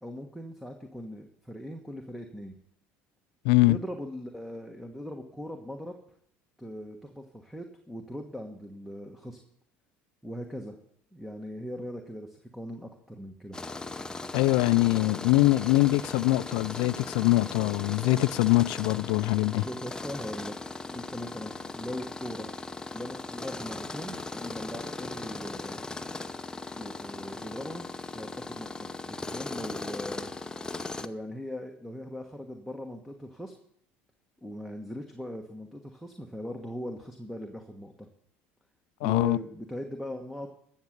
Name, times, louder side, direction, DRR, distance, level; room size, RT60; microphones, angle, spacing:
voice 1, 0.0-2.5 3.6-5.9 6.6-9.4 10.2-10.8 11.1-13.6 19.6-22.5 22.9-25.8 26.7-27.9 28.1-30.3 31.0-33.5 34.4-38.1 39.0-40.5, equal, ahead, 1.4 m, -40 dB
voice 2, 3.4-3.8 14.3-19.6 39.0-39.4, left 20 dB, 80° left, 0.4 m, -23 dB
Tools, 13.5-31.1, left 3 dB, 15° left, 0.7 m, -38 dB
13.0 x 7.3 x 6.6 m
supercardioid pair, 85°, 5 cm